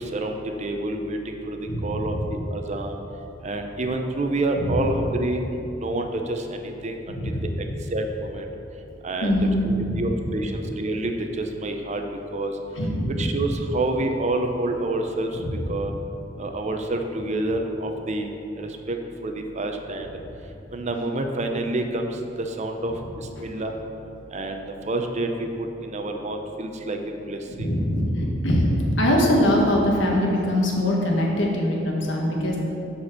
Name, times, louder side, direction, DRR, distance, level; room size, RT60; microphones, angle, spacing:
voice 1, 0.1-2.1 2.5-2.9 3.4-5.4 5.8-7.0 7.9-8.4 9.0-11.1 11.4-12.0 12.3-12.5 13.2-15.3 15.7-15.9 16.4-18.3 18.6-20.1 20.7-22.1 22.4-22.9 23.4-23.7 24.3-25.5 25.8-27.0 27.3-27.7, right 2 dB, 40° right, 4 dB, 0.6 m, -28 dB
voice 2, 1.7-2.2 4.6-4.7 7.1-7.4 9.2-10.0 12.8-13.2 15.6-15.7 27.6-32.6, left 1 dB, 90° left, -1 dB, 1.3 m, -22 dB
7.7 x 4.3 x 6.0 m, 2.9 s
head